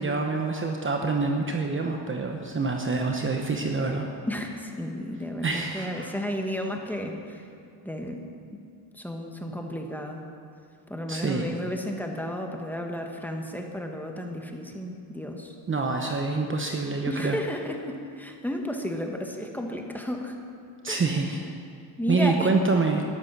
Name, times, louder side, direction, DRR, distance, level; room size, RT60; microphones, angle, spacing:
voice 1, 0.0-4.1 5.4-6.2 11.1-11.5 15.7-17.4 20.8-21.4 22.1-23.0, right 3 dB, 25° right, 2 dB, 1.0 m, -26 dB
voice 2, 4.3-7.4 7.8-8.2 8.5-8.6 8.9-10.2 10.9-15.5 17.0-20.4 20.9-21.5 22.0-22.5, equal, 5° left, 2 dB, 1.4 m, -33 dB
13.0 x 11.0 x 6.0 m, 2.4 s
cardioid pair, 105°, 47 cm